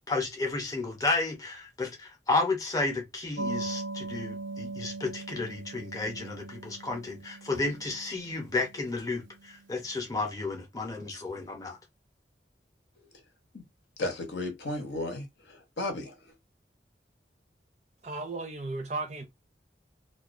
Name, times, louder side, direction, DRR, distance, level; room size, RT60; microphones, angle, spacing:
voice 1, 0.1-11.8, left 3 dB, 20° left, 0.6 m, -32 dB
sound 1, 3.4-9.6, right 3 dB, 90° right, 0.5 m, -40 dB
voice 2, 14.0-16.3, left 2 dB, 75° left, 0.8 m, -34 dB
voice 3, 18.0-19.2, right 3 dB, 40° right, 0.5 m, -35 dB
2.3 x 2.3 x 2.4 m
head